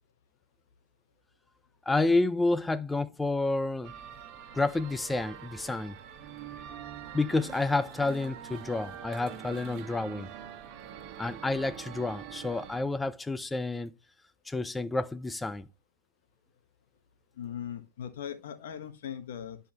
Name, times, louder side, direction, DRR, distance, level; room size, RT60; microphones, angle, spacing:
voice 1, 1.9-3.9 4.5-6.0 7.1-10.3 11.2-13.9 14.5-15.7, left 2 dB, 10° left, 0.6 m, -29 dB
sound 1, 3.8-12.8, right 9 dB, 50° right, 1.6 m, -45 dB
voice 2, 17.4-19.6, left 9 dB, 80° left, 1.3 m, -39 dB
10.0 x 5.6 x 3.0 m
supercardioid pair, 120°, 0 cm